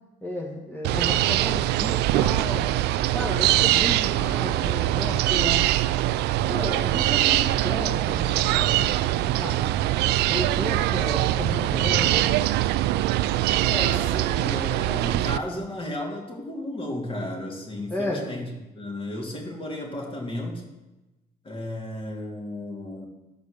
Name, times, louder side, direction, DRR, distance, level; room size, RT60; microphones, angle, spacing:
voice 1, 0.2-2.7 3.1-5.7 6.4-8.9 9.3-9.6 10.3-12.4 17.9-18.2, left 1 dB, 10° left, -3 dB, 1.7 m, -33 dB
sound 1, 0.8-15.4, right 14 dB, 80° right, 0.4 m, -23 dB
voice 2, 13.6-18.5 18.7-20.6 21.4-23.1, left 1 dB, 30° left, 0 dB, 2.9 m, -33 dB
13.5 x 5.0 x 6.6 m, 1.0 s
cardioid pair, 110°, 17 cm